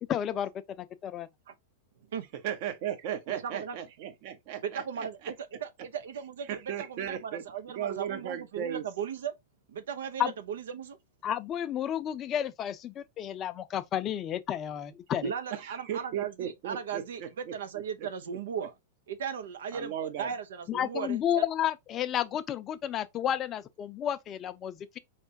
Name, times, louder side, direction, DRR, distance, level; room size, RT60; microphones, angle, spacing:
voice 1, 0.1-0.5 0.8-1.3 10.2-10.3 11.2-15.3 20.7-25.0, left 10 dB, 35° left, 0.5 m, -31 dB
voice 2, 2.4-4.8 5.2-5.3 6.5-7.4 7.7-8.8 15.5-17.5 18.0-18.1 19.7-20.3, right 9 dB, 55° right, 0.9 m, -36 dB
voice 3, 3.3-3.8 4.6-9.3 9.7-11.0 15.2-18.7 19.1-21.4, right 7 dB, 75° right, 0.6 m, -37 dB
4.3 x 3.3 x 2.7 m
hypercardioid pair, 105°, 0 cm